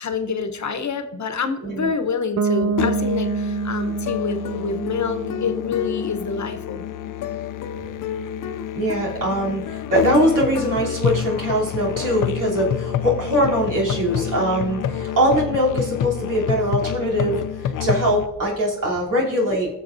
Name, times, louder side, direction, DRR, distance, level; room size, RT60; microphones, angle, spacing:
voice 1, 0.0-6.8, left 5 dB, 60° left, 8 dB, 0.9 m, -27 dB
Bass guitar, 2.4-6.2, right 4 dB, 60° right, 0.7 m, -26 dB
Musical instrument, 2.8-18.3, left 9 dB, 80° left, 0.5 m, -28 dB
voice 2, 8.7-19.7, equal, 80° right, -5 dB, 3.2 m, -22 dB
18.5 x 6.5 x 2.6 m, 0.96 s
cardioid pair, 60°, 31 cm